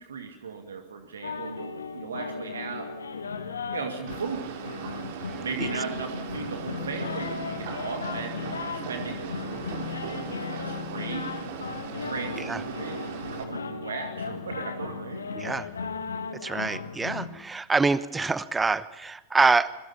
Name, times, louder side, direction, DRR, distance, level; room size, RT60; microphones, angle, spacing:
voice 1, 0.0-2.9 3.7-4.5 5.4-11.6 12.0-15.2, right 5 dB, 70° right, 5 dB, 2.3 m, -37 dB
sound 1, 1.2-17.3, left 5 dB, 75° left, 1.9 m, -36 dB
sound 2, 4.1-13.4, right 8 dB, 50° right, 2.9 m, -39 dB
voice 2, 5.3-5.7 12.4-12.6 15.3-15.7 16.4-19.8, right 4 dB, 10° right, 17 dB, 1.0 m, -26 dB
27.0 x 22.0 x 5.7 m, 1.1 s
figure-of-eight pair, 90°, 0 cm